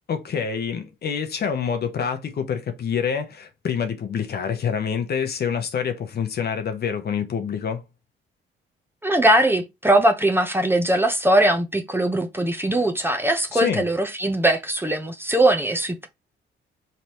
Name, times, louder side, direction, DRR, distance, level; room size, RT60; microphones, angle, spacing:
voice 1, 0.1-7.8 13.5-13.8, left 7 dB, 55° left, 0.9 m, -26 dB
voice 2, 9.0-16.1, right 1 dB, 10° right, 0.7 m, -20 dB
4.0 x 3.3 x 3.0 m
cardioid pair, 90°, 20 cm